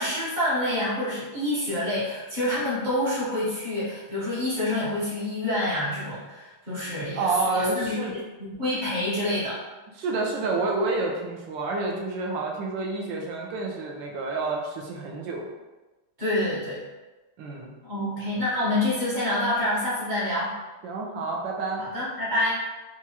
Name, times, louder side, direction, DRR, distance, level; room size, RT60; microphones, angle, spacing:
voice 1, 0.0-8.0 8.4-9.6 16.2-16.8 17.8-20.5 21.8-22.5, left 1 dB, 40° right, -8 dB, 0.7 m, -27 dB
voice 2, 7.1-8.1 10.0-15.5 17.4-17.7 20.8-21.9, right 3 dB, 75° right, 0 dB, 1.3 m, -29 dB
4.5 x 2.4 x 2.8 m, 1.2 s
omnidirectional pair, 2.2 m